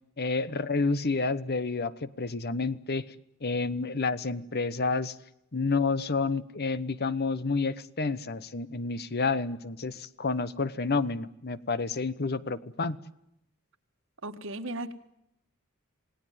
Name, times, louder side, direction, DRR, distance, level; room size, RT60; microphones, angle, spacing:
voice 1, 0.2-3.0 3.4-5.2 5.5-13.0, left 4 dB, 45° left, 1.1 m, -29 dB
voice 2, 14.2-14.9, right 2 dB, 60° right, 1.8 m, -36 dB
28.0 x 18.5 x 9.3 m
head